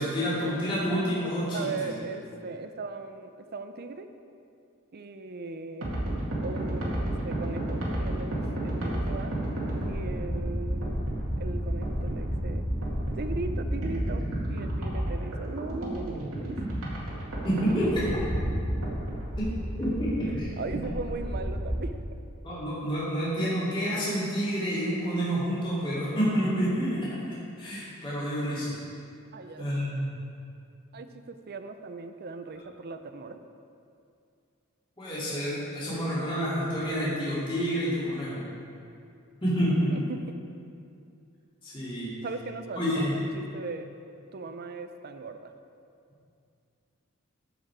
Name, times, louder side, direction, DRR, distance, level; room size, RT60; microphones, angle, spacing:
voice 1, 0.0-1.9 17.4-18.1 19.4-19.5 19.8-20.5 22.4-28.7 29.6-30.0 35.0-38.4 39.4-39.9 41.6-42.1 42.7-43.1, equal, 25° left, -10 dB, 2.5 m, -28 dB
voice 2, 1.5-4.1 4.9-5.9 6.4-9.4 9.8-11.0 11.4-12.7 13.2-16.6 20.6-22.0 29.3-29.7 30.9-33.4 39.9-40.4 42.2-43.9 44.3-45.5, right 3 dB, 50° right, 9 dB, 0.5 m, -38 dB
sound 1, 5.8-21.8, right 1 dB, 80° right, 2.1 m, -31 dB
13.5 x 5.1 x 4.8 m, 2.5 s
head